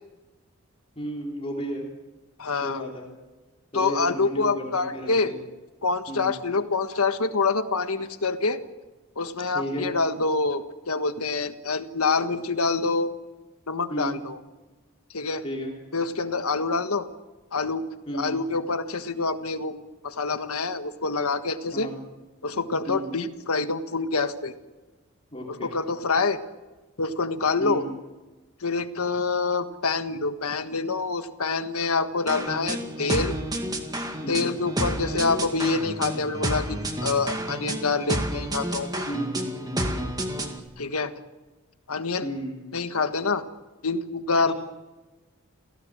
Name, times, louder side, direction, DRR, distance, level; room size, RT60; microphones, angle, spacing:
voice 1, 0.9-1.9 2.6-3.1 3.7-5.4 6.1-6.3 9.5-9.9 13.9-14.2 15.4-15.7 18.1-18.4 21.7-22.0 22.9-23.1 25.3-25.7 27.6-27.9 34.2-34.5 39.0-40.2 42.2-42.6 44.5-44.6, equal, 25° left, -1 dB, 3.4 m, -33 dB
voice 2, 2.4-2.8 3.7-5.3 5.8-8.6 9.2-13.1 13.7-14.4 15.1-15.4 15.9-17.1 17.5-17.8 18.1-21.9 22.4-24.5 25.5-26.4 27.0-27.8 28.6-33.4 34.3-39.1 40.8-41.1 41.9-42.3 42.7-43.4 43.8-44.5, left 4 dB, 90° left, 9 dB, 1.5 m, -26 dB
sound 1, 32.3-40.6, right 1 dB, 15° right, 2.1 m, -30 dB
29.0 x 17.5 x 7.6 m, 1.2 s
head